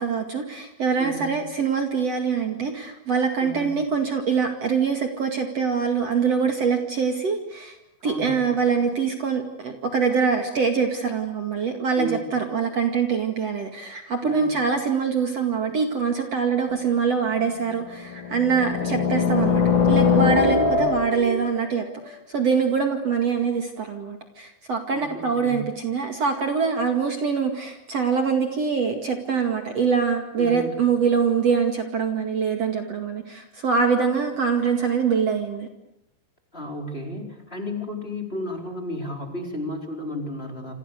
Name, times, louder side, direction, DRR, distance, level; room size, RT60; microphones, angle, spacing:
voice 1, 0.0-7.8 8.0-19.6 19.9-35.7, right 5 dB, 45° right, 4 dB, 3.0 m, -24 dB
voice 2, 1.0-1.3 3.4-3.8 8.0-8.4 12.0-12.4 14.2-14.7 18.8-19.0 20.5-20.8 24.9-25.7 30.4-30.7 36.5-40.7, left 1 dB, 15° left, 2 dB, 4.2 m, -33 dB
sound 1, 16.7-16.8 17.9-21.4, left 5 dB, 75° left, 4.9 m, -21 dB
28.5 x 28.0 x 6.8 m, 0.78 s
omnidirectional pair, 4.3 m